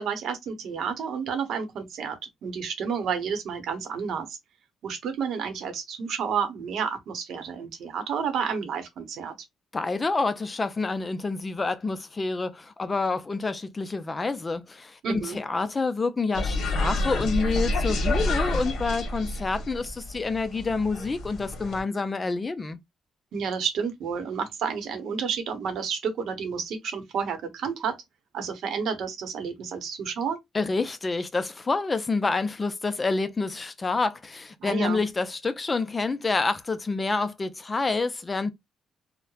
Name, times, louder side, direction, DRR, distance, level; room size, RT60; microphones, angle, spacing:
voice 1, 0.0-2.2 2.4-4.4 4.8-9.3 15.0-15.4 23.3-28.0 28.3-30.4 34.6-35.0, right 6 dB, 75° right, 0.8 m, -30 dB
voice 2, 9.7-22.8 30.5-38.5, left 3 dB, 30° left, 0.4 m, -28 dB
sound 1, 16.3-21.8, left 1 dB, 65° left, 0.8 m, -28 dB
3.0 x 2.1 x 2.3 m
cardioid pair, 90°, 0 cm